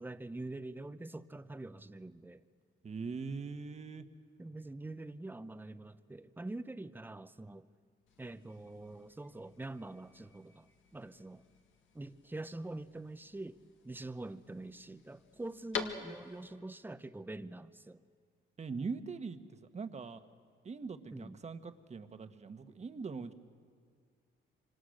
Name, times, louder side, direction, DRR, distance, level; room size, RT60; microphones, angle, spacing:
voice 1, 0.0-2.4 4.4-7.7 8.2-11.4 11.9-18.0 21.1-21.4, right 2 dB, 10° right, 13 dB, 0.8 m, -45 dB
voice 2, 2.8-4.0 18.6-19.4 19.7-20.2 20.6-23.3, right 4 dB, 35° right, 9 dB, 1.3 m, -41 dB
sound 1, 8.1-16.6, left 7 dB, 75° left, 1.9 m, -48 dB
26.0 x 25.5 x 6.5 m, 2.1 s
cardioid pair, 90°, 20 cm